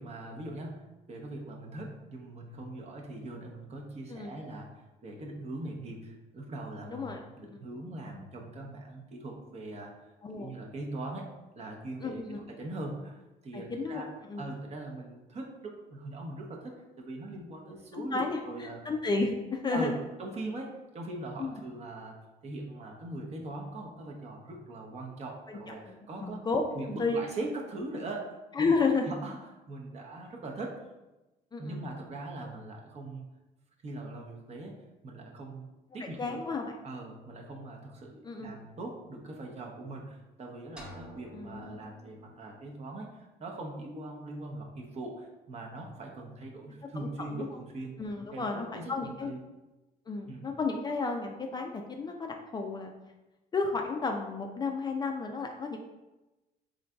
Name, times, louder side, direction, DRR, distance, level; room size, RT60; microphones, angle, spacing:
voice 1, 0.0-9.9 10.3-12.2 12.5-14.1 14.4-18.8 19.7-19.9 20.2-22.2 22.4-26.4 26.7-28.7 29.1-29.4 29.7-30.8 31.6-33.3 33.8-34.8 35.0-35.7 35.9-36.4 36.8-48.0 48.3-49.4 50.3-50.5, right 2 dB, 40° right, 0 dB, 0.7 m, -41 dB
voice 2, 6.9-7.6 10.2-10.6 12.0-12.4 13.5-14.0 14.3-14.4 18.0-18.4 18.9-20.0 21.4-21.5 25.5-25.6 26.2-27.2 28.6-29.1 31.5-31.8 36.0-36.7 38.2-38.5 41.3-41.8 47.0-47.5 48.0-49.3 50.1-52.9 53.5-55.8, left 4 dB, 25° left, 3 dB, 0.3 m, -32 dB
sound 1, 40.8-42.7, equal, 5° right, 0.7 m, -50 dB
3.8 x 3.7 x 2.3 m, 1.1 s
cardioid pair, 110°, 17 cm